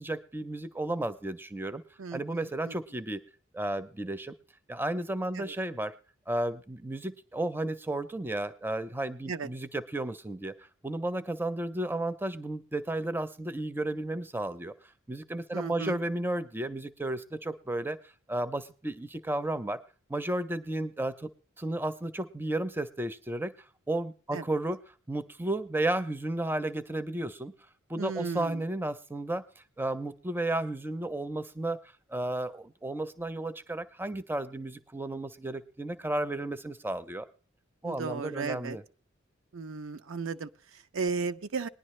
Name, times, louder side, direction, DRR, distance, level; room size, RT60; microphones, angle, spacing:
voice 1, 0.0-1.8 2.1-3.2 3.5-4.3 4.7-5.9 6.3-14.7 15.1-18.0 18.3-19.8 20.1-21.3 21.6-23.5 23.9-24.8 25.1-27.5 27.9-31.8 32.1-37.3 37.8-38.8, right 1 dB, 10° right, 0.5 m, -33 dB
voice 2, 2.0-2.8 5.3-5.5 9.3-9.5 15.5-16.0 24.3-24.5 28.0-28.6 37.8-38.8 39.5-41.7, right 4 dB, 75° right, 0.6 m, -35 dB
19.5 x 10.5 x 3.2 m
head